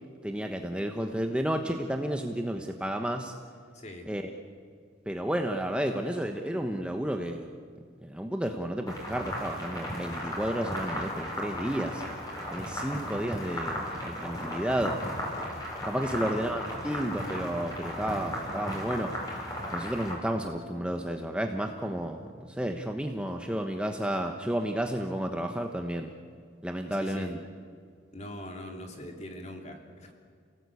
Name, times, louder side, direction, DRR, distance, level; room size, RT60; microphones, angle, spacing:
voice 1, 0.2-3.3 4.1-4.3 5.1-7.5 8.0-12.0 12.5-15.0 15.8-19.1 19.7-26.1 26.6-27.4, right 1 dB, 5° right, 4 dB, 1.0 m, -32 dB
voice 2, 3.7-4.1 16.1-16.2 26.9-27.4 28.1-30.1, left 1 dB, 35° left, 2 dB, 3.1 m, -42 dB
sound 1, 8.9-20.1, equal, 20° left, 5.6 m, -36 dB
29.5 x 17.5 x 8.4 m, 2.1 s
head